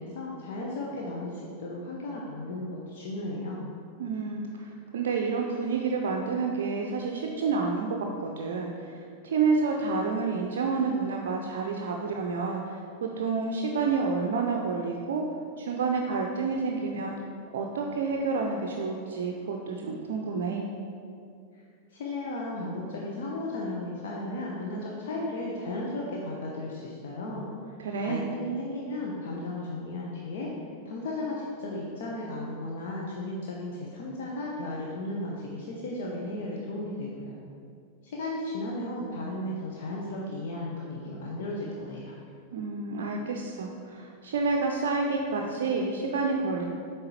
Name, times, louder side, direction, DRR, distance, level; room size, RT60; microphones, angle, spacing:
voice 1, 0.0-3.6 21.5-21.6 21.9-27.7 28.0-30.5 30.9-37.3 38.0-42.1, left 1 dB, 55° left, -3 dB, 0.7 m, -35 dB
voice 2, 4.0-15.3 15.6-17.1 17.5-20.7 27.8-28.3 42.5-46.6, right 4 dB, 60° right, 1 dB, 0.4 m, -29 dB
7.6 x 3.4 x 4.2 m, 2.3 s
figure-of-eight pair, 90°, 0 cm